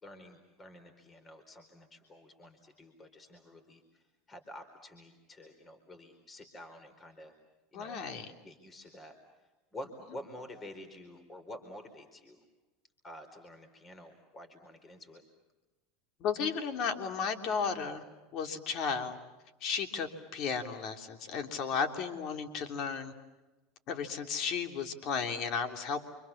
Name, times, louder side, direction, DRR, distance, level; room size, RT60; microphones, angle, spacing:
voice 1, 0.0-4.0 4.3-7.3 7.7-8.0 8.4-9.2 9.7-12.4 13.0-15.2, left 1 dB, 25° left, 7 dB, 4.5 m, -49 dB
voice 2, 7.7-8.3 16.2-18.0 18.3-19.2 19.6-23.1 23.9-26.1, left 6 dB, 55° left, 6 dB, 3.2 m, -34 dB
29.5 x 26.5 x 7.3 m, 1.1 s
supercardioid pair, 105°, 0 cm